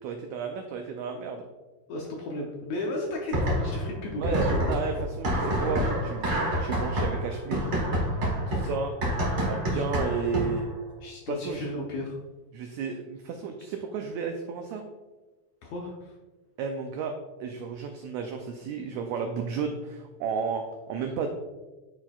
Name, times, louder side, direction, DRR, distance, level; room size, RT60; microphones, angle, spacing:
voice 1, 0.0-1.5 4.2-7.7 8.5-8.9 9.4-10.7 11.3-11.7 12.5-14.8 16.6-21.3, right 5 dB, 85° right, 5 dB, 1.6 m, -33 dB
voice 2, 1.9-4.6 9.7-9.8 11.0-12.1 15.6-16.2, left 1 dB, 75° left, -1 dB, 1.7 m, -34 dB
sound 1, 3.3-3.9 4.2-10.7, equal, 50° right, 0.7 m, -27 dB
9.5 x 4.3 x 2.3 m, 1.2 s
omnidirectional pair, 3.7 m